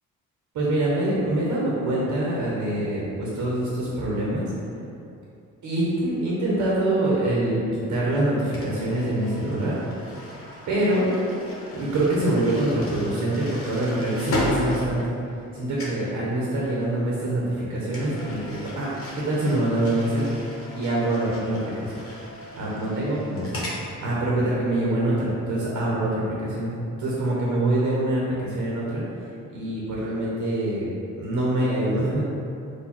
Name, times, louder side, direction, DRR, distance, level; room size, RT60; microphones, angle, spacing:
voice 1, 0.5-4.5 5.6-9.7 10.7-11.1 11.7-15.0 15.5-18.9 19.1-20.4 20.7-22.0 22.5-26.7 27.0-29.0 29.5-30.9 31.2-32.2, right 1 dB, 70° right, -5 dB, 1.1 m, -25 dB
sound 1, 8.5-15.5 15.8-16.1 17.9-23.8, left 1 dB, 45° left, 1.1 m, -35 dB
4.6 x 2.6 x 4.3 m, 2.7 s
cardioid pair, 90°, 30 cm